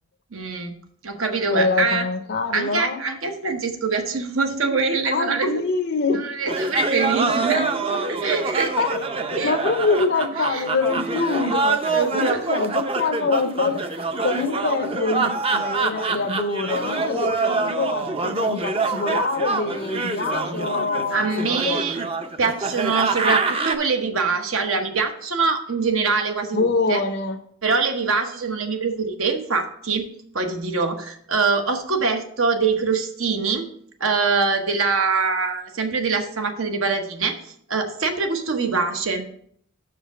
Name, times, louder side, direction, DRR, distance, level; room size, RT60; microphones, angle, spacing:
voice 1, 0.3-0.7 1.0-2.1 2.5-5.6 6.1-7.7 8.1-8.8 9.4-9.5 10.5-10.6 11.4-11.5 11.9-12.5 21.1-22.0 22.4-27.0 27.6-30.1 30.3-33.7 34.0-39.2, right 4 dB, 70° right, 5 dB, 0.9 m, -24 dB
voice 2, 1.5-3.0 5.1-6.6 7.9-8.0 8.8-13.8 14.2-21.8 26.5-27.4, left 4 dB, 50° left, 5 dB, 0.5 m, -25 dB
sound 1, 6.5-23.8, right 3 dB, 25° right, 0.5 m, -25 dB
6.1 x 5.0 x 6.6 m, 0.64 s
head